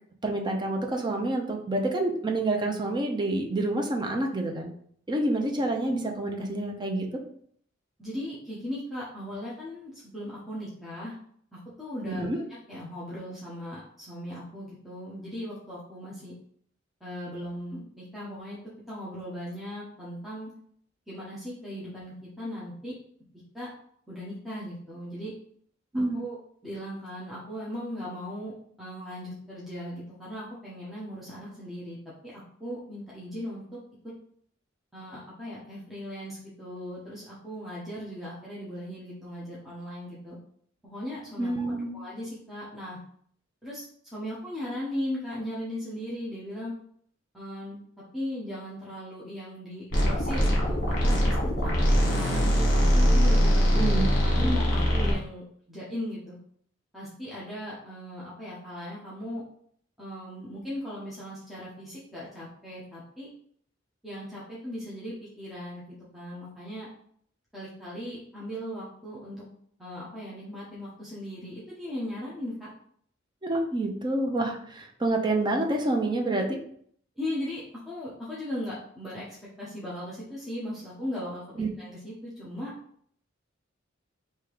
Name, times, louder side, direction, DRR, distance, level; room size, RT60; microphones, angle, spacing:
voice 1, 0.2-4.7 5.1-7.1 12.0-12.4 25.9-26.2 41.4-41.9 53.7-54.1 73.4-76.6 81.6-81.7, right 2 dB, 25° right, 2 dB, 0.6 m, -28 dB
voice 2, 8.0-11.1 11.5-12.3 12.7-16.3 17.0-18.6 18.9-20.5 21.1-22.9 23.5-23.7 24.1-25.3 25.9-26.4 26.6-28.5 28.8-32.0 32.2-32.3 32.6-33.6 34.9-40.4 40.8-43.0 43.6-46.7 47.3-47.8 48.1-51.3 51.6-53.7 54.2-56.4 56.9-59.4 60.0-63.3 64.0-65.8 66.1-66.9 67.5-69.4 69.8-72.7 77.2-81.4 81.8-82.7, equal, ahead, -9 dB, 1.0 m, -38 dB
sound 1, 49.9-55.1, equal, 45° left, 1.7 m, -22 dB
3.5 x 2.9 x 4.7 m, 0.63 s
head